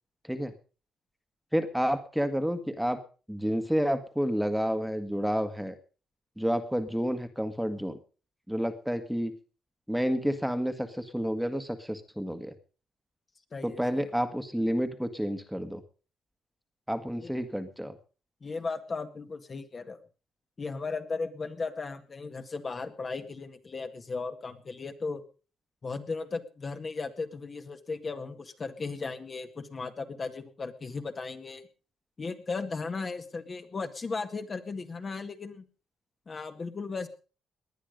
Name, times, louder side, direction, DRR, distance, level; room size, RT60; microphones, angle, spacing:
voice 1, 1.5-3.0 3.3-5.8 6.4-8.0 8.5-9.3 9.9-12.5 13.6-15.8 16.9-18.0, equal, ahead, 9 dB, 1.8 m, -30 dB
voice 2, 13.5-14.1 17.2-17.3 18.4-20.0 20.6-25.2 25.8-31.6 32.2-35.6 36.3-37.1, left 4 dB, 35° left, 6 dB, 1.9 m, -36 dB
19.5 x 10.5 x 5.2 m, 0.37 s
cardioid pair, 90°, 0 cm